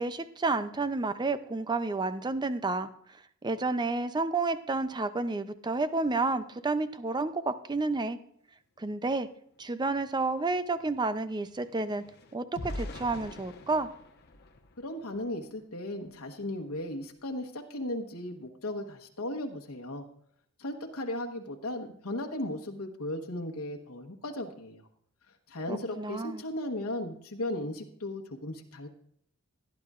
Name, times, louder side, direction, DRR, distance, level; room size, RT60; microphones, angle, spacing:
voice 1, 0.0-2.9 3.4-8.2 8.8-9.3 9.6-12.0 12.3-13.9 25.7-26.4, right 3 dB, 20° right, 12 dB, 0.5 m, -30 dB
sound 1, 9.6-9.7 10.0-15.5 16.0-16.2 16.5-16.8, left 1 dB, 50° left, 1.1 m, -45 dB
voice 2, 14.8-20.1 20.6-24.9 25.5-28.9, left 1 dB, 80° left, 3 dB, 1.2 m, -36 dB
17.5 x 10.5 x 2.5 m, 0.68 s
head